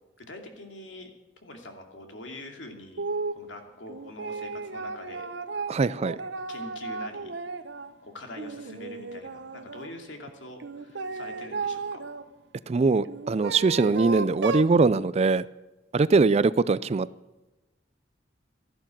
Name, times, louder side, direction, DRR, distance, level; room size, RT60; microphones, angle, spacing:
voice 1, 0.2-1.1 1.4-5.3 6.0-6.1 6.5-7.3 8.0-12.0 16.3-16.4, left 1 dB, 75° left, 2.7 m, -44 dB
sound 1, 3.0-3.4 3.9-7.9 8.3-9.9 10.6-12.2 13.0-14.7, right 3 dB, 70° right, 0.9 m, -34 dB
voice 2, 5.7-6.2 12.7-15.4 15.9-17.1, right 4 dB, 35° right, 0.4 m, -22 dB
14.0 x 11.5 x 7.5 m
head